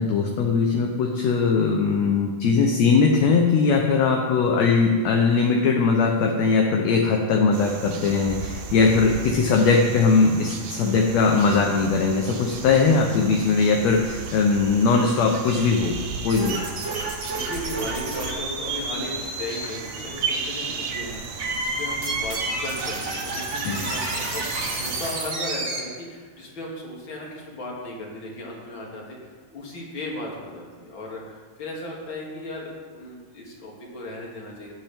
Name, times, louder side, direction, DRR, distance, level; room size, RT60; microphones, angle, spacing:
voice 1, 0.0-15.9 16.2-16.6 23.6-23.8, left 4 dB, 70° left, 1 dB, 2.0 m, -20 dB
sound 1, 7.5-25.1, right 5 dB, 90° right, 2.5 m, -36 dB
sound 2, 16.3-25.8, right 2 dB, 60° right, 3.7 m, -31 dB
voice 2, 17.3-34.8, left 1 dB, 40° left, -3 dB, 2.9 m, -36 dB
17.5 x 8.6 x 3.6 m, 1.5 s
omnidirectional pair, 3.5 m